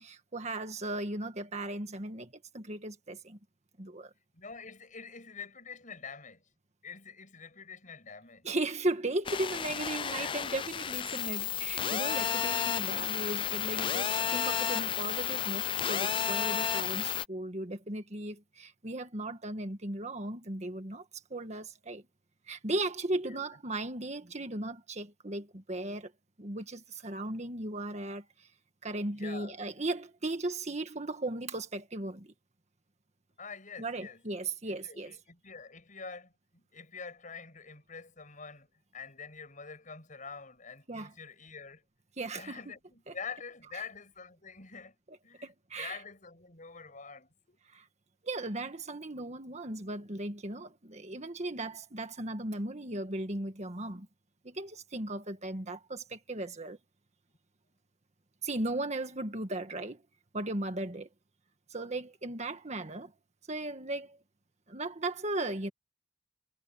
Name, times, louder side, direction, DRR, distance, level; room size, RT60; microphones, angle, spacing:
voice 1, 0.0-3.4 3.8-4.1 8.4-21.0 21.3-22.0 22.5-26.1 26.4-28.2 28.8-32.3 33.8-35.2 40.9-41.1 42.2-42.6 43.1-43.2 45.4-46.0 47.7-47.8 48.2-54.1 54.4-56.8 58.4-60.0 60.3-61.1 61.7-63.1 63.5-64.2 64.7-65.7, right 2 dB, 35° right, 1.7 m, -36 dB
voice 2, 4.3-6.4 6.8-8.5 10.0-10.4 23.3-23.4 29.1-29.6 33.4-34.2 34.7-41.8 42.3-44.9 45.2-47.6, left 5 dB, 45° left, 7.4 m, -46 dB
sound 1, 9.3-17.3, left 8 dB, 25° left, 0.4 m, -32 dB
head